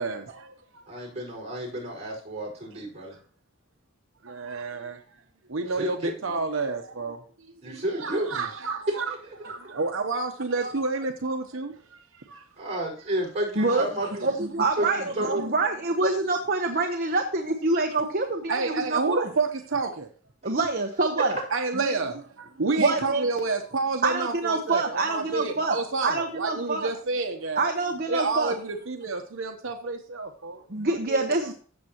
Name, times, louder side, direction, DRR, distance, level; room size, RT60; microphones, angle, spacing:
voice 1, 0.0-0.8 4.2-5.0 5.5-7.2 7.6-9.1 9.5-11.7 12.3-12.4 13.7-13.8 17.7-17.8 18.5-20.1 21.5-27.7 28.1-30.6 31.1-31.3, right 3 dB, 85° right, 1.0 m, -29 dB
voice 2, 0.9-3.2 5.7-6.2 7.6-8.5 8.9-9.3 12.6-14.2 14.8-15.4, right 1 dB, 35° right, 5.4 m, -31 dB
voice 3, 13.6-13.9 14.2-19.3 20.4-21.4 21.7-21.9 22.8-23.2 24.0-25.7 26.0-26.9 27.6-28.5 30.7-31.5, right 3 dB, 50° right, 1.1 m, -26 dB
15.0 x 7.4 x 3.0 m
head